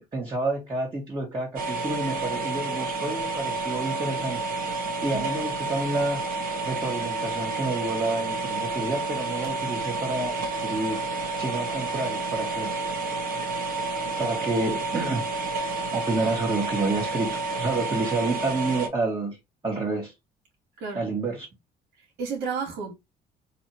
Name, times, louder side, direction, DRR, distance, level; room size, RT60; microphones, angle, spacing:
voice 1, 0.0-4.4 5.0-6.2 6.6-11.1 11.4-12.7 13.4-13.5 14.2-15.3 15.9-19.4 19.6-20.1 20.9-21.5, right 2 dB, 25° right, 1.7 m, -29 dB
High tech computer noise Thinking, 1.6-18.9, right 3 dB, 55° right, 1.3 m, -30 dB
voice 2, 20.8-21.1 22.2-22.9, right 5 dB, 80° right, 1.9 m, -32 dB
4.2 x 2.9 x 2.9 m
cardioid pair, 110°, 17 cm